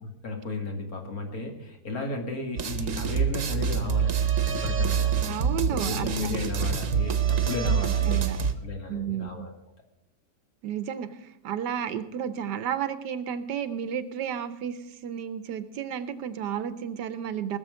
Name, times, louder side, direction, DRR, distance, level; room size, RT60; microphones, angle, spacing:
voice 1, 0.0-5.3 5.7-8.2 8.6-9.5, left 2 dB, 55° left, 2 dB, 2.4 m, -34 dB
sound 1, 2.6-8.5, right 7 dB, 55° right, 1.2 m, -26 dB
voice 2, 5.2-6.5 7.8-8.4 8.9-9.5 10.6-17.6, right 9 dB, 80° right, 13 dB, 1.4 m, -32 dB
19.5 x 7.2 x 6.3 m, 0.89 s
omnidirectional pair, 1.8 m